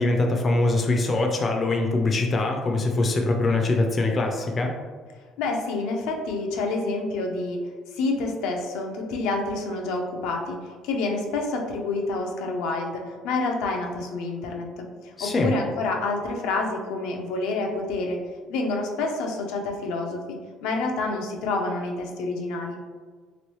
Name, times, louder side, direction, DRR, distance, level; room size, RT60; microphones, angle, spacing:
voice 1, 0.0-4.8 15.2-15.5, left 2 dB, 25° left, 2 dB, 0.3 m, -23 dB
voice 2, 5.4-7.6 7.9-18.2 18.5-22.8, left 3 dB, 85° left, 2 dB, 0.5 m, -28 dB
3.0 x 3.0 x 3.0 m, 1.5 s
cardioid pair, 165°, 0 cm